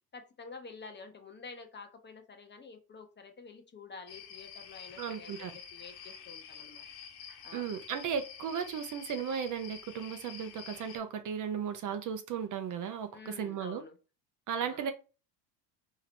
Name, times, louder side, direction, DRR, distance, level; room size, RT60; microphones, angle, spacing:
voice 1, 0.1-6.8 7.4-7.7 13.1-14.0 14.6-14.9, left 4 dB, 25° left, 0.8 m, -49 dB
sound 1, 4.1-11.0, left 7 dB, 50° left, 1.5 m, -48 dB
voice 2, 5.0-5.5 7.5-13.8 14.5-14.9, right 7 dB, 40° right, 0.7 m, -35 dB
4.0 x 3.0 x 4.2 m
supercardioid pair, 110°, 47 cm